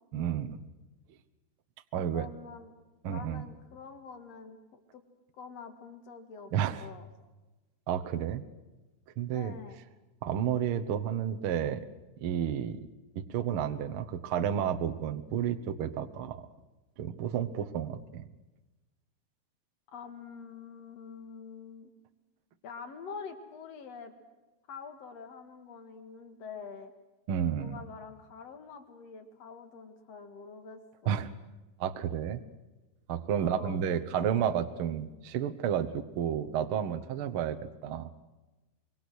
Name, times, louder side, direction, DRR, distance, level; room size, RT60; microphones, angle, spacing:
voice 1, 0.1-0.6 1.9-2.3 3.0-3.4 6.5-6.9 7.9-8.4 9.2-9.6 10.2-11.9 12.2-12.8 13.1-16.4 17.0-18.2 27.3-27.8 31.1-31.3 31.8-32.4 33.1-38.1, right 9 dB, 75° right, 7 dB, 1.2 m, -31 dB
voice 2, 1.9-2.7 3.1-5.0 5.3-6.5 6.8-7.1 9.3-9.8 19.9-21.9 22.6-24.1 24.7-26.9 27.6-31.2 33.4-34.5, left 5 dB, 50° left, 7 dB, 2.7 m, -46 dB
26.0 x 23.5 x 6.4 m, 1.1 s
omnidirectional pair, 4.1 m